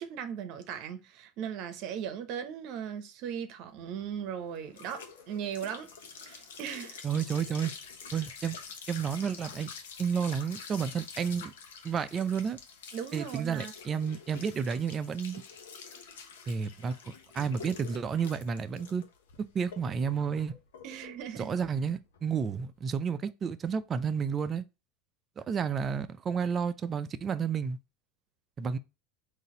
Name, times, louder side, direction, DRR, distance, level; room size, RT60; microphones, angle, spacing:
voice 1, 0.0-7.1 12.9-13.7 20.8-21.5, right 8 dB, 60° right, 0.8 m, -38 dB
sound 1, 3.7-22.8, left 5 dB, 80° left, 0.9 m, -47 dB
voice 2, 7.0-7.7 8.1-8.6 8.9-9.7 10.0-11.5 11.8-12.6 13.1-15.4 16.5-19.0 19.5-20.5 21.4-24.6 25.4-27.8 28.6-28.8, right 6 dB, 30° right, 0.5 m, -31 dB
4.0 x 2.7 x 3.7 m
hypercardioid pair, 95°, 0 cm